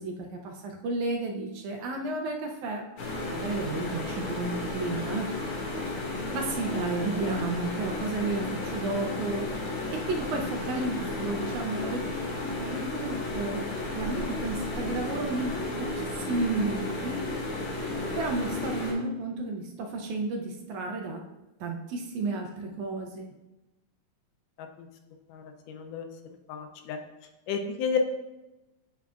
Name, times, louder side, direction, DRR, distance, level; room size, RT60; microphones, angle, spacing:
voice 1, 0.0-2.8 3.2-5.3 6.3-9.5 9.9-12.0 12.4-17.2 18.2-21.2 21.6-23.3, right 3 dB, 75° right, 2 dB, 1.9 m, -32 dB
sound 1, 3.0-18.9, left 2 dB, 50° left, 1.9 m, -33 dB
voice 2, 25.3-26.1 26.5-27.0 27.5-28.0, left 7 dB, 80° left, 5 dB, 2.1 m, -32 dB
8.6 x 5.8 x 2.4 m, 1.0 s
omnidirectional pair, 3.8 m